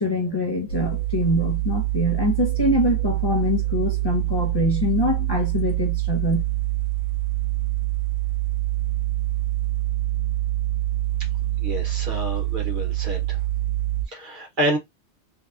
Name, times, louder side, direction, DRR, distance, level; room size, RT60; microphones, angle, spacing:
voice 1, 0.0-6.4, left 1 dB, 35° left, 0.4 m, -24 dB
sound 1, 0.7-14.1, right 17 dB, 85° left, 0.9 m, -25 dB
voice 2, 11.6-13.4 14.1-14.8, right 1 dB, 50° right, 1.0 m, -28 dB
2.7 x 2.2 x 2.4 m
omnidirectional pair, 1.2 m